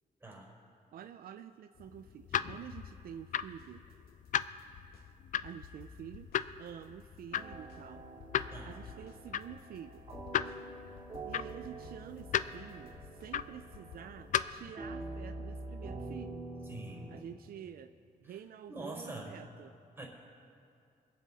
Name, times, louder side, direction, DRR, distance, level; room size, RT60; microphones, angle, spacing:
voice 1, 0.9-3.8 5.4-6.3 6.6-8.0 8.6-10.0 11.2-16.4 17.1-17.9 18.2-19.7, right 9 dB, 80° right, 9 dB, 0.5 m, -48 dB
sound 1, 1.8-14.7, left 9 dB, 60° left, 0.4 m, -38 dB
sound 2, 3.6-5.1 5.4-7.9 8.2-14.0, left 6 dB, 90° left, 0.8 m, -54 dB
sound 3, 7.3-17.2, right 2 dB, 35° right, 2.5 m, -46 dB
voice 2, 16.7-17.1 18.7-19.4 20.0-20.1, right 2 dB, 15° right, -3 dB, 4.1 m, -44 dB
24.0 x 8.4 x 4.1 m, 2.4 s
cardioid pair, 95°, 15 cm